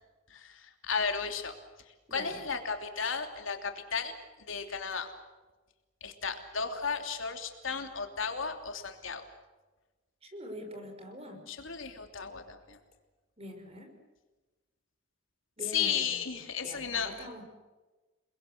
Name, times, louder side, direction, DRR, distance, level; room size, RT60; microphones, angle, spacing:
voice 1, 0.3-4.1 4.5-5.1 6.0-9.2 11.5-12.8 15.6-17.3, left 6 dB, 75° left, 5 dB, 3.0 m, -34 dB
voice 2, 2.1-2.4 10.2-11.4 13.4-13.9 15.6-16.2 16.6-17.4, equal, 30° right, 5 dB, 5.4 m, -44 dB
30.0 x 21.0 x 7.9 m, 1.2 s
head